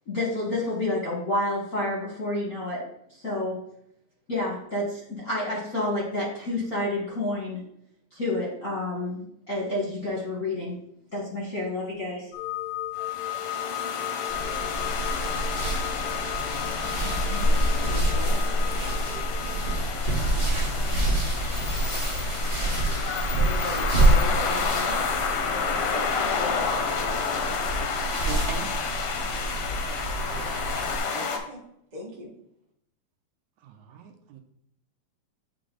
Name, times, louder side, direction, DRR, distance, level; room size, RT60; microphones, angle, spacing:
voice 1, 0.1-2.8 3.1-3.6 4.3-7.6 8.1-10.8 11.1-12.3, left 2 dB, 45° left, -4 dB, 1.1 m, -29 dB
sound 1, 12.3-19.8, left 14 dB, 85° left, 2.0 m, -35 dB
sound 2, 13.0-31.4, left 5 dB, 70° left, 1.4 m, -30 dB
sound 3, 14.3-31.0, right 1 dB, 30° right, 0.7 m, -27 dB
voice 2, 17.4-18.4 20.1-20.6 23.3-25.0 25.8-28.1 31.1-31.6 31.9-32.3, right 1 dB, 60° right, -3 dB, 0.4 m, -39 dB
voice 3, 28.2-28.8 33.6-34.4, right 7 dB, 80° right, 5 dB, 2.0 m, -40 dB
8.9 x 3.4 x 3.8 m, 0.73 s
omnidirectional pair, 3.4 m